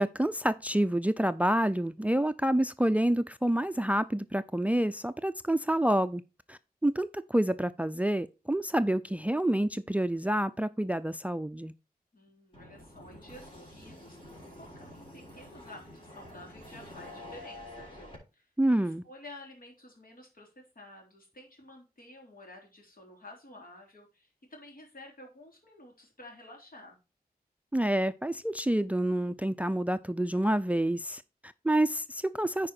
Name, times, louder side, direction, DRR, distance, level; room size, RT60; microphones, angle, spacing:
voice 1, 0.0-6.2 6.5-11.7 18.6-19.0 27.7-32.7, right 1 dB, 10° right, 0.4 m, -28 dB
voice 2, 12.1-18.5 18.8-27.0, left 1 dB, 65° left, 3.5 m, -51 dB
sound 1, 12.5-18.2, left 1 dB, 35° left, 4.2 m, -48 dB
9.9 x 4.7 x 4.4 m
cardioid pair, 50°, 16 cm